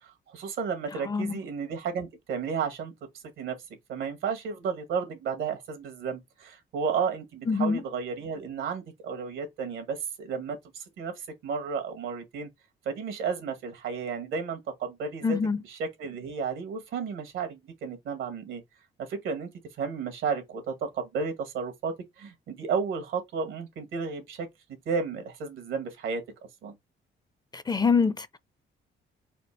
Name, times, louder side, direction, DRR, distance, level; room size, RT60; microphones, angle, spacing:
voice 1, 0.0-2.9 3.4-3.6 3.9-12.5 12.8-15.4 15.6-18.6 19.1-19.5 19.8-24.5 24.8-26.2 26.6-26.7, right 5 dB, 85° right, 1.7 m, -33 dB
voice 2, 1.1-1.4 7.5-7.8 15.2-15.6 27.5-28.4, left 5 dB, 20° left, 0.5 m, -25 dB
4.3 x 2.5 x 4.6 m
cardioid pair, 90°, 20 cm